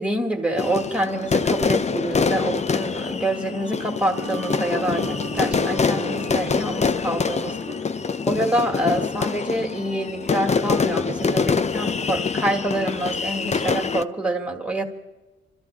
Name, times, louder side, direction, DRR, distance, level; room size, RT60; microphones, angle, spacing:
voice 1, 0.0-7.8 8.3-14.8, right 1 dB, 5° right, 3 dB, 2.0 m, -26 dB
sound 1, 0.6-14.0, left 5 dB, 25° left, 0.5 m, -25 dB
sound 2, 4.1-8.3 8.7-8.8, right 3 dB, 60° right, 1.2 m, -38 dB
27.0 x 13.5 x 3.5 m, 1.1 s
cardioid pair, 115°, 29 cm